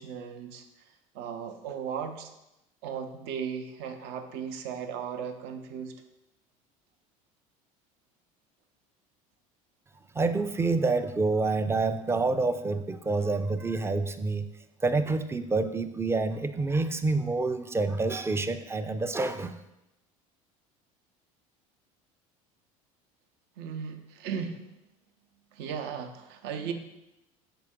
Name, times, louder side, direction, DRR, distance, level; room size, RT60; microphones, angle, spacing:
voice 1, 0.0-2.3 2.8-5.9 23.6-24.7 25.5-26.7, right 7 dB, 65° right, 6 dB, 0.7 m, -36 dB
voice 2, 10.1-14.5 14.8-19.6, right 3 dB, 15° right, 10 dB, 0.4 m, -27 dB
5.8 x 4.4 x 3.6 m, 0.91 s
hypercardioid pair, 75°, 18 cm